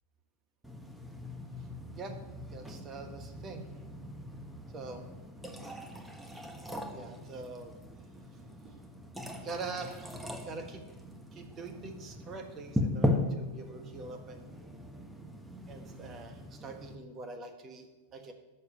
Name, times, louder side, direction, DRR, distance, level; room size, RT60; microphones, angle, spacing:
sound 1, 0.6-16.9, left 1 dB, 5° right, 1.2 m, -39 dB
voice 1, 2.5-3.7 4.7-5.0 6.8-7.7 8.6-8.8 9.4-10.2 10.4-10.8 11.3-14.5 15.7-17.9 18.1-18.3, right 3 dB, 30° right, 6 dB, 1.3 m, -44 dB
6.8 x 6.5 x 7.5 m, 1.2 s
hypercardioid pair, 105°, 0 cm